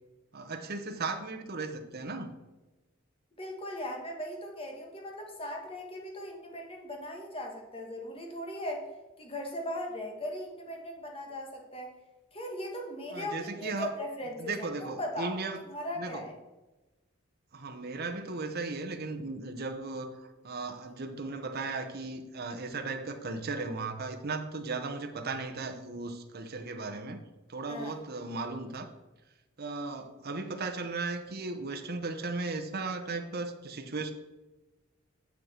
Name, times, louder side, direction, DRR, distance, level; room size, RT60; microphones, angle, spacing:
voice 1, 0.3-2.3 13.1-13.9 14.4-15.6 16.0-16.3 17.5-27.2 27.5-28.9 29.6-34.1, right 3 dB, 50° right, 1.0 m, -36 dB
voice 2, 3.4-8.9 9.2-11.9 12.3-16.4 27.7-28.0, left 1 dB, 25° left, 1.7 m, -38 dB
9.4 x 6.7 x 4.5 m
head